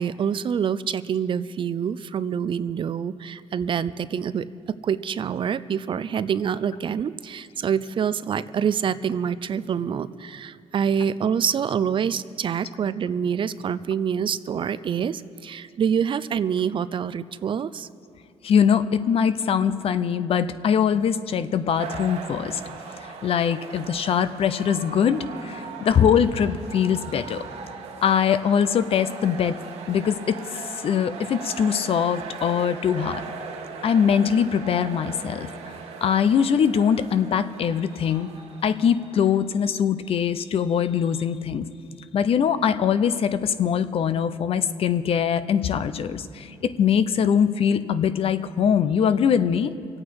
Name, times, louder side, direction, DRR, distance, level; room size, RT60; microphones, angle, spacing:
voice 1, 0.0-4.5 4.8-17.9, right 7 dB, 50° right, 15 dB, 0.5 m, -26 dB
voice 2, 18.4-22.6 23.2-27.4 28.0-29.6 29.9-33.2 33.8-35.5 36.0-38.3 38.6-41.7 42.1-49.7, left 7 dB, 60° left, 12 dB, 0.7 m, -22 dB
sound 1, 21.8-39.4, right 5 dB, 80° right, 1.6 m, -39 dB
25.0 x 8.7 x 4.7 m, 2.4 s
cardioid pair, 90°, 11 cm